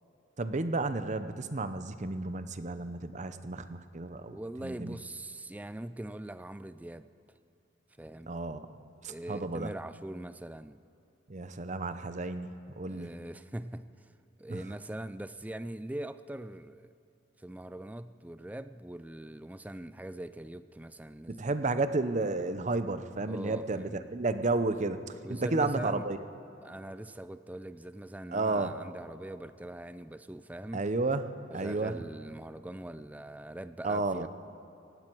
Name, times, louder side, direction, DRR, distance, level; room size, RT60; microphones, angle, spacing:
voice 1, 0.4-4.4 4.6-5.0 8.3-8.6 9.0-9.7 11.3-13.2 14.5-14.6 21.3-25.0 25.3-26.2 28.3-28.7 30.7-31.2 31.5-31.9 33.8-34.3, right 3 dB, 40° right, 11 dB, 0.7 m, -32 dB
voice 2, 4.3-7.1 8.0-8.3 9.0-10.8 12.9-14.1 14.4-16.9 17.4-21.5 23.2-24.1 25.2-26.1 26.6-30.8 31.5-34.3, right 1 dB, 10° right, 13 dB, 0.4 m, -42 dB
18.5 x 16.5 x 4.6 m, 2.9 s
head